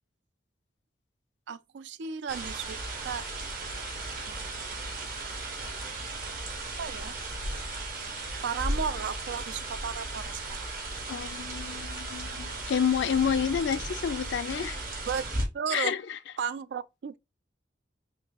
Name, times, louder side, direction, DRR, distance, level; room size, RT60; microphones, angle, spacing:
voice 1, 1.5-3.3 4.3-4.7 6.8-7.2 8.4-10.7 15.1-15.2 15.5-15.9 16.4-17.2, right 6 dB, 75° right, 0.4 m, -34 dB
sound 1, 2.3-15.4, right 2 dB, 55° right, 1.4 m, -36 dB
voice 2, 11.1-14.8 15.7-16.2, left 7 dB, 70° left, 0.3 m, -29 dB
3.6 x 3.2 x 2.8 m
head